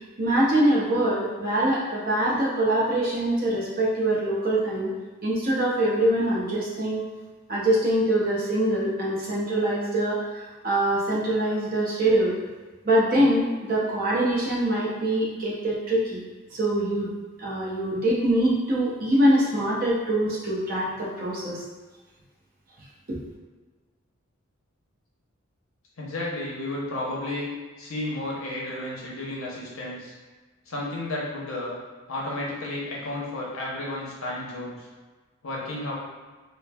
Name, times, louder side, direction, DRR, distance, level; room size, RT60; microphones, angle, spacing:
voice 1, 0.2-4.9 5.2-7.0 7.5-12.3 12.8-16.2 16.5-17.1 17.4-21.6 23.1-23.2, right 1 dB, 45° right, -5 dB, 0.6 m, -24 dB
voice 2, 26.0-27.5 27.8-30.1 30.7-31.8 32.1-34.9 35.4-35.9, left 1 dB, 80° left, -4 dB, 0.7 m, -32 dB
3.1 x 2.0 x 2.2 m, 1.3 s
head